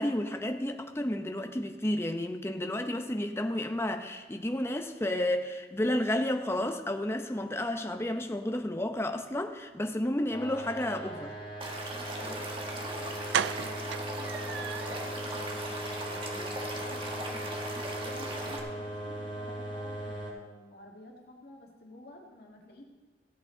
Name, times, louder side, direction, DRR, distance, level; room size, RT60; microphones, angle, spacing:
voice 1, 0.0-11.4, left 1 dB, 15° left, 5 dB, 0.7 m, -31 dB
sound 1, 10.3-20.3, right 1 dB, 35° left, 3.2 m, -39 dB
Stream / Liquid, 11.6-18.6, right 1 dB, 30° right, 1.4 m, -39 dB
voice 2, 12.1-22.8, left 1 dB, 60° left, 0 dB, 1.8 m, -51 dB
sound 2, 12.7-12.8 13.3-15.1 15.5-15.6 15.9-16.1 16.3-16.4, right 9 dB, 70° right, 0.3 m, -34 dB
16.5 x 8.2 x 3.8 m, 1.3 s
head